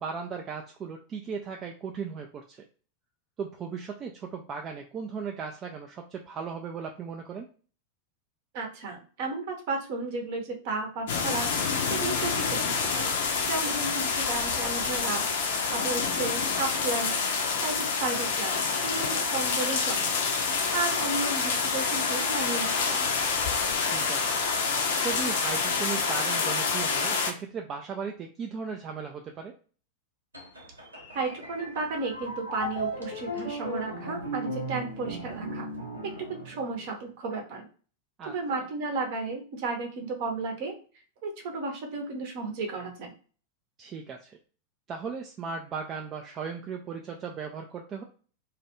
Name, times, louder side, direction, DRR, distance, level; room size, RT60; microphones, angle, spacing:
voice 1, 0.0-2.6 3.4-7.5 13.6-13.7 23.8-24.3 25.0-29.5 38.2-38.3 43.8-44.4 44.9-48.0, right 6 dB, 30° right, 2 dB, 0.3 m, -37 dB
voice 2, 8.5-13.1 13.5-17.1 17.6-18.5 18.8-20.1 20.7-23.1 31.1-35.7 36.0-37.6 38.3-40.8 41.2-43.1, right 3 dB, 50° right, 3 dB, 0.8 m, -33 dB
sound 1, 11.1-27.3, left 5 dB, 55° left, 0.5 m, -27 dB
sound 2, 30.3-37.0, equal, 80° right, 0.7 m, -37 dB
2.4 x 2.2 x 2.9 m, 0.39 s
figure-of-eight pair, 90°, 0 cm